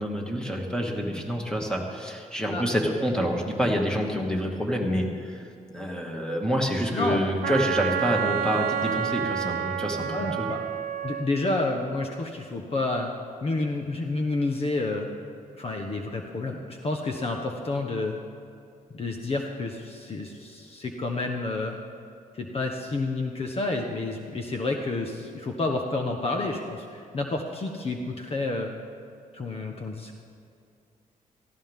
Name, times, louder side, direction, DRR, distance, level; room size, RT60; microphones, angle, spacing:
voice 1, 0.0-10.5, equal, 5° left, 0 dB, 2.3 m, -27 dB
voice 2, 6.9-7.2 10.0-10.6 11.0-13.1 13.4-15.2 15.6-18.2 18.9-21.8 22.3-28.7 29.3-30.2, left 2 dB, 45° left, 2 dB, 1.2 m, -29 dB
Wind instrument woodwind instrument, 7.4-11.3, right 8 dB, 85° right, 0.8 m, -29 dB
17.5 x 15.0 x 3.7 m, 2.4 s
cardioid pair, 95°, 14 cm